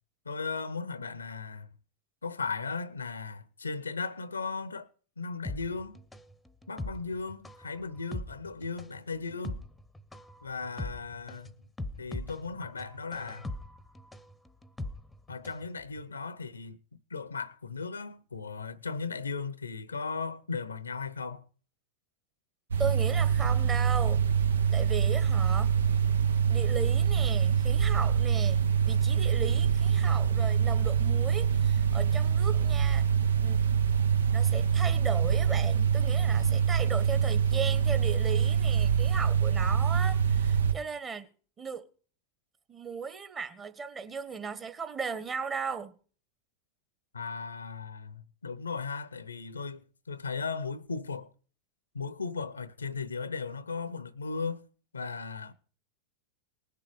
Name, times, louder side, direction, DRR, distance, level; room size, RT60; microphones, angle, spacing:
voice 1, 0.2-1.7 2.2-4.9 5.2-6.0 6.7-9.6 10.4-11.5 11.9-13.5 15.3-21.5 47.1-51.3 51.9-54.7 54.9-55.5, left 4 dB, 75° left, 0.8 m, -37 dB
sound 1, 5.4-15.7 16.0-16.1, left 2 dB, 5° left, 1.0 m, -41 dB
sound 2, 22.7-40.7, right 7 dB, 70° right, 0.8 m, -25 dB
voice 2, 22.8-24.3 24.7-25.7 26.5-28.6 28.9-33.1 33.4-33.6 34.3-41.3 41.6-41.8 42.7-45.9, right 5 dB, 20° right, 1.5 m, -36 dB
20.0 x 6.8 x 4.9 m
figure-of-eight pair, 90°, 0 cm